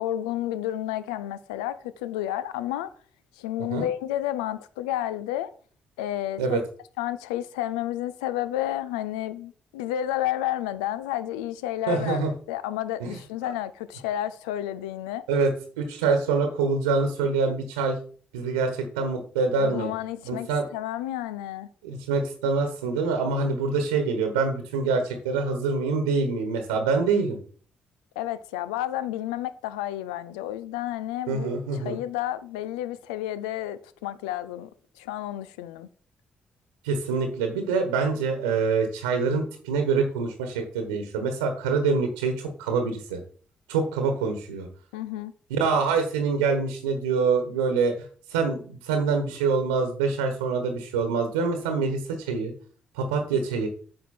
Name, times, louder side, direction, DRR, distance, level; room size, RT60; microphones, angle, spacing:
voice 1, 0.0-2.9 3.4-5.5 6.0-6.6 7.0-12.2 12.5-15.2 19.6-21.7 28.2-34.7 35.0-35.9 44.9-45.3, left 13 dB, 80° left, 0.5 m, -31 dB
voice 2, 11.9-12.3 13.0-13.2 15.3-15.5 15.8-18.0 18.3-19.9 20.3-20.7 21.8-27.4 31.3-32.0 36.8-43.2 43.7-44.7 45.5-47.9 48.3-52.5 52.9-53.7, right 4 dB, 85° right, 1.2 m, -25 dB
9.0 x 6.5 x 4.2 m
hypercardioid pair, 45°, 4 cm